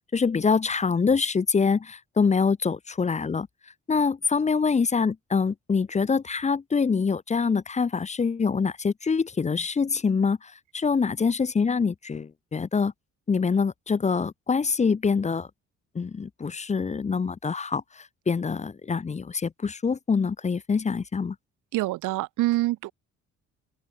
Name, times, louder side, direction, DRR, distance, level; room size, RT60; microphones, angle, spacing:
voice 1, 0.1-3.5 3.9-10.4 10.7-12.9 13.3-15.5 16.0-17.8 18.3-21.3, left 5 dB, 25° left, 0.6 m, -25 dB
voice 2, 21.7-22.9, right 18 dB, 85° right, 0.7 m, -25 dB
open air
cardioid pair, 90°, 30 cm